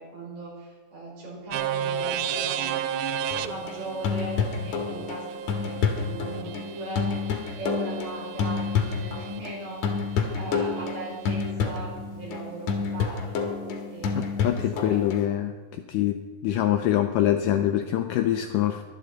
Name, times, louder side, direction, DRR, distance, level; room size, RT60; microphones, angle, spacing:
voice 1, 0.0-2.7 3.4-7.1 7.6-10.0 10.3-13.4 13.9-15.0, right 2 dB, 60° right, -4 dB, 5.7 m, -38 dB
sound 1, 1.5-9.4, right 8 dB, 90° right, 2.5 m, -33 dB
sound 2, 3.3-9.6 9.8-15.3, left 5 dB, 60° left, 2.2 m, -29 dB
voice 2, 14.2-15.5 15.9-16.2 16.4-18.8, left 12 dB, 90° left, 6 dB, 1.9 m, -24 dB
23.0 x 8.5 x 4.0 m, 1.4 s
omnidirectional pair, 4.4 m